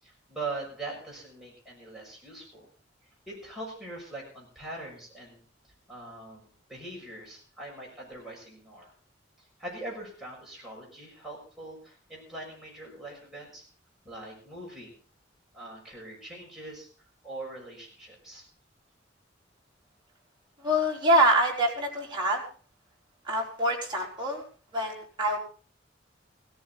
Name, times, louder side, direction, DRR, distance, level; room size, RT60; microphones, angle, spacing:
voice 1, 0.0-2.7 3.3-5.4 5.9-8.9 9.6-13.7 14.0-15.0 15.5-16.9 17.2-18.5, right 2 dB, ahead, -4 dB, 6.8 m, -42 dB
voice 2, 20.6-22.4 23.2-24.5 24.7-25.4, right 1 dB, 25° right, -2 dB, 4.2 m, -25 dB
17.0 x 14.5 x 4.1 m, 0.39 s
head